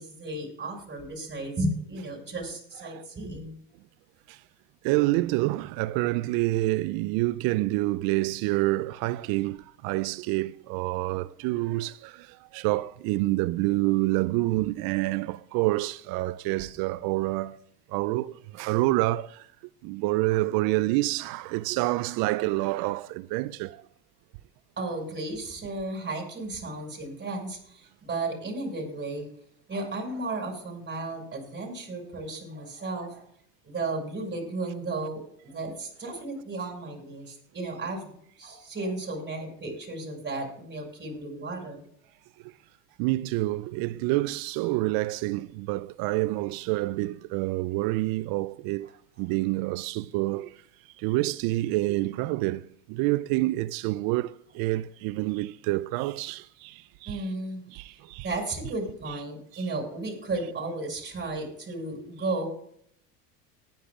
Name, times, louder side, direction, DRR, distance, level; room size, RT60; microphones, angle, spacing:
voice 1, 0.0-3.6 24.8-29.3 29.7-33.3 33.6-41.8 57.1-57.6 58.2-62.5, right 2 dB, 20° right, 6.1 m, -34 dB
voice 2, 4.8-17.6 17.9-19.5 19.8-23.8 43.0-48.9 49.2-50.5 51.0-57.2 57.7-58.3 59.5-59.6, right 19 dB, 50° right, 0.5 m, -27 dB
19.5 x 10.0 x 2.4 m
hypercardioid pair, 85°, 48 cm